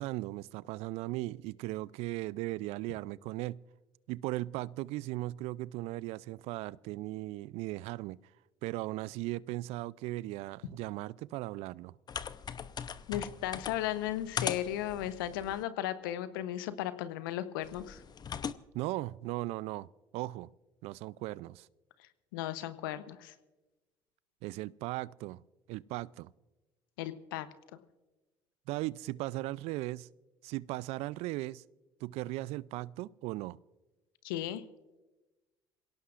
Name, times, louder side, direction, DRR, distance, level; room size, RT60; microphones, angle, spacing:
voice 1, 0.0-3.6 4.1-8.2 8.6-11.9 18.7-19.9 20.1-20.5 20.8-21.7 24.4-25.4 25.7-26.3 28.7-30.1 30.4-31.6 32.0-33.6, right 18 dB, 65° right, 0.4 m, -37 dB
sound 1, 12.1-15.6 17.6-18.5, left 7 dB, 40° left, 0.8 m, -40 dB
voice 2, 13.1-18.0 22.3-23.3 27.0-27.5 34.2-34.6, left 12 dB, 80° left, 0.9 m, -35 dB
27.5 x 17.0 x 2.5 m
hypercardioid pair, 65°, 11 cm